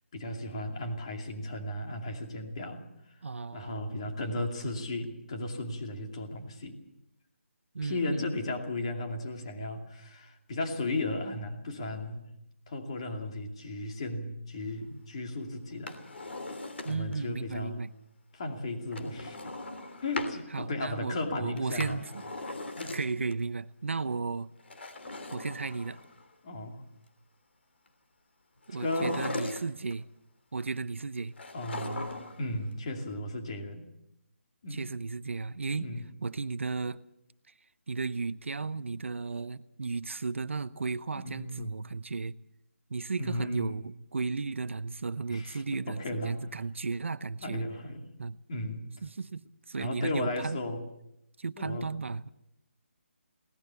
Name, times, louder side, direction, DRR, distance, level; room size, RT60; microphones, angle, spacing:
voice 1, 0.1-2.9 3.5-6.8 7.8-12.3 12.7-16.0 16.3-16.4 16.8-17.8 18.3-19.5 20.0-22.0 22.8-23.0 26.4-26.8 28.8-29.2 31.5-32.1 32.4-33.9 34.6-34.9 35.8-36.0 41.1-41.8 43.2-43.8 45.3-46.4 47.4-48.1 48.5-48.9 49.8-50.8 51.6-51.9, left 2 dB, 25° left, 2.5 m, -35 dB
voice 2, 3.2-4.1 4.4-4.7 7.7-8.2 16.8-17.9 20.5-22.1 22.9-24.5 25.3-26.0 28.7-30.0 30.5-31.3 34.7-35.9 36.2-37.0 37.9-42.4 42.9-47.6 48.2-48.4 49.0-49.4 49.7-50.6 51.4-52.3, right 4 dB, 70° right, 0.8 m, -34 dB
Drawer open or close, 15.7-17.2 18.9-20.4 21.6-23.3 24.6-26.2 28.7-29.9 31.4-32.5 32.7-32.8, left 2 dB, 55° left, 3.1 m, -39 dB
22.5 x 18.5 x 6.9 m
hypercardioid pair, 175°, 7 cm